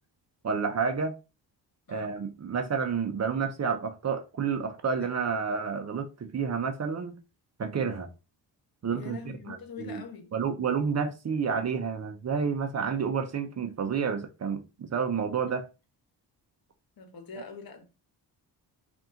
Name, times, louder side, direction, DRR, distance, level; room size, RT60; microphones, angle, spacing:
voice 1, 0.4-1.2 1.9-7.2 7.6-8.1 8.8-9.2 9.5-10.0 10.3-15.6, right 6 dB, 40° right, 0.7 m, -30 dB
voice 2, 1.9-2.2 5.0-5.1 5.4-5.5 8.9-10.3 17.0-17.8, left 6 dB, 55° left, 1.2 m, -44 dB
4.1 x 2.7 x 3.7 m
cardioid pair, 95°, 43 cm